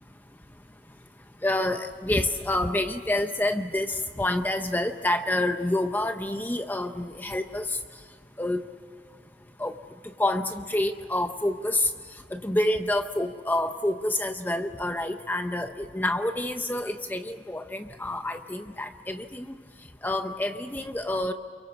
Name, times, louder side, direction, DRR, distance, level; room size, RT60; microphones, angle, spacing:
voice 1, 1.4-7.8 8.4-8.6 9.6-9.8 10.2-11.9 12.3-19.5 20.0-21.3, left 1 dB, 10° left, 7 dB, 0.6 m, -28 dB
28.5 x 24.0 x 8.4 m, 2.1 s
head